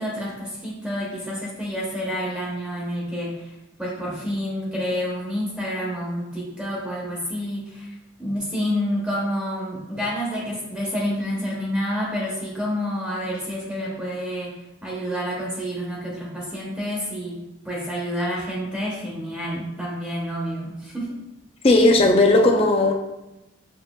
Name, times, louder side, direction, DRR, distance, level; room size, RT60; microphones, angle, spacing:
voice 1, 0.0-3.5 3.8-7.9 8.2-14.5 14.8-17.4 17.6-21.1, equal, 5° right, -5 dB, 0.7 m, -28 dB
voice 2, 21.6-22.9, left 2 dB, 30° left, 3 dB, 0.4 m, -16 dB
6.1 x 2.4 x 2.2 m, 0.96 s
head